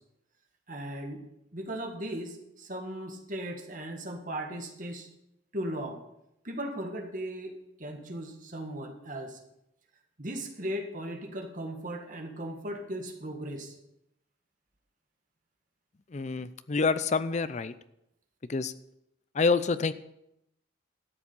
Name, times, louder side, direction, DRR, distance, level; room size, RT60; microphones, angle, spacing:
voice 1, 0.7-1.2 1.5-5.1 5.5-6.0 6.4-7.5 7.8-9.4 10.2-13.7, right 1 dB, 40° right, 3 dB, 1.7 m, -37 dB
voice 2, 16.1-17.7 18.5-18.7 19.3-19.9, left 4 dB, 35° left, 14 dB, 0.5 m, -27 dB
12.5 x 7.4 x 5.5 m, 0.83 s
head